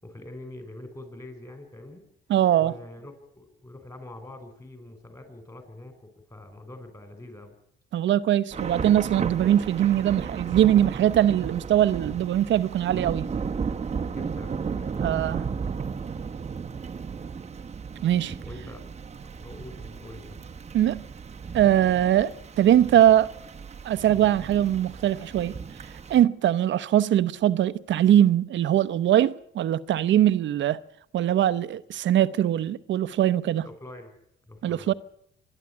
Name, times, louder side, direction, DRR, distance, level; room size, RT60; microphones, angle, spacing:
voice 1, 0.0-2.0 2.6-7.5 14.0-15.7 18.4-18.8 19.2-20.4 33.6-34.1 34.5-35.0, left 1 dB, 15° left, 5.4 m, -44 dB
voice 2, 2.3-2.7 7.9-13.3 15.0-15.4 18.0-18.3 20.7-21.0 21.5-22.3 22.6-23.3 23.8-25.5 26.1-30.8 31.1-33.6 34.6-34.9, right 11 dB, 70° right, 0.9 m, -21 dB
Thunder / Rain, 8.5-26.2, right 5 dB, 35° right, 1.0 m, -34 dB
26.0 x 11.0 x 9.7 m
cardioid pair, 90°, 20 cm